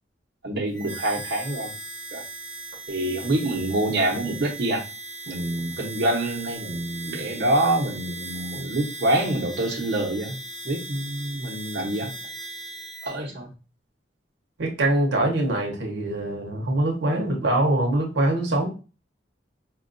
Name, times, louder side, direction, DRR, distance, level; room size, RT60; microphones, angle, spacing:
voice 1, 0.4-1.7 2.1-2.2 2.9-4.8 5.3-10.4 10.6-12.1 13.0-13.5, right 1 dB, 60° right, -1 dB, 0.8 m, -26 dB
Harmonica, 0.7-13.2, right 2 dB, 80° left, 1.6 m, -38 dB
voice 2, 14.6-18.7, right 1 dB, 85° right, 0 dB, 0.7 m, -23 dB
4.3 x 2.3 x 2.5 m, 0.33 s
head